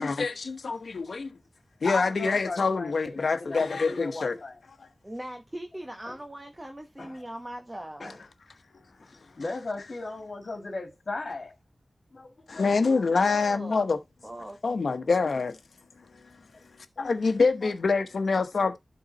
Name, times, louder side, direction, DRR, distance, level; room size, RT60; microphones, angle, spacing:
voice 1, 0.0-1.3 1.8-4.4 12.5-14.0 14.6-15.6 17.0-18.8, left 4 dB, 85° left, 1.0 m, -25 dB
voice 2, 1.8-4.6 6.1-6.2 7.0-7.2 8.0-8.2 9.0-9.1 9.4-11.5 12.1-13.0 16.5-16.6 17.0-17.2 17.6-17.7, left 3 dB, 60° left, 2.1 m, -37 dB
voice 3, 5.0-8.2 12.8-13.8 14.2-15.1, right 1 dB, 15° right, 1.2 m, -41 dB
11.5 x 3.9 x 4.0 m
wide cardioid pair, 85°, 0 cm